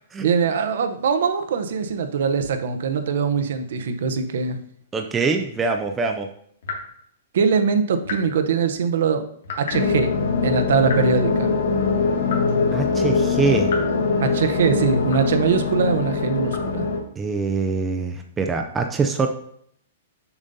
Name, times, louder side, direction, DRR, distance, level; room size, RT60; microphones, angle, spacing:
voice 1, 0.2-4.6 7.3-9.2 9.6-10.1 10.4-11.5 14.2-16.9, right 6 dB, 60° right, 8 dB, 0.7 m, -22 dB
voice 2, 4.9-6.3 12.7-13.7 17.2-19.3, right 4 dB, 10° right, 4 dB, 0.4 m, -24 dB
sound 1, 6.6-6.8 8.0-8.4 9.4-9.8 10.8-11.1 12.2-12.6 13.6-13.9 15.1-15.4 16.5-16.7, left 4 dB, 60° left, 2.1 m, -32 dB
sound 2, 9.7-17.0, left 4 dB, 85° left, 2.1 m, -22 dB
7.0 x 6.7 x 2.6 m, 0.66 s
hypercardioid pair, 175°, 0 cm